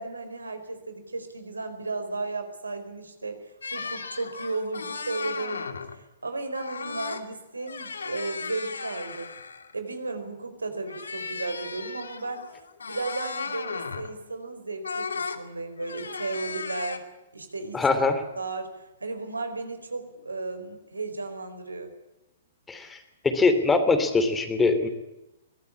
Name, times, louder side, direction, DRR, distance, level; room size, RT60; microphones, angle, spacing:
voice 1, 0.0-9.3 9.7-12.5 12.9-17.0 17.3-17.9 18.4-21.9, right 3 dB, 85° right, 8 dB, 4.6 m, -34 dB
sound 1, 3.6-6.0 6.5-7.2 7.6-9.8 10.8-14.2 14.8-15.4 15.8-17.0, left 5 dB, 75° left, 2.5 m, -36 dB
voice 2, 17.7-18.2 22.7-23.0 23.2-24.9, left 3 dB, 10° left, 9 dB, 3.0 m, -22 dB
23.5 x 18.0 x 8.7 m, 0.97 s
figure-of-eight pair, 115°, 0 cm